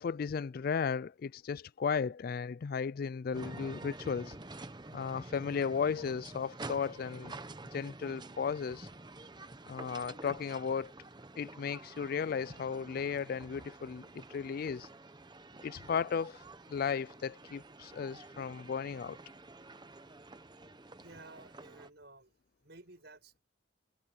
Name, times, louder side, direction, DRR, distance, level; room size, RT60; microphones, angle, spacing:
voice 1, 0.0-4.4 4.9-7.3 7.7-8.9 9.7-10.9 11.4-14.9 15.6-16.4 16.7-19.2, left 6 dB, 50° left, 0.3 m, -35 dB
sound 1, 3.3-21.9, right 2 dB, 20° right, 0.9 m, -49 dB
voice 2, 21.0-22.3 22.6-23.4, right 2 dB, 55° right, 6.5 m, -54 dB
head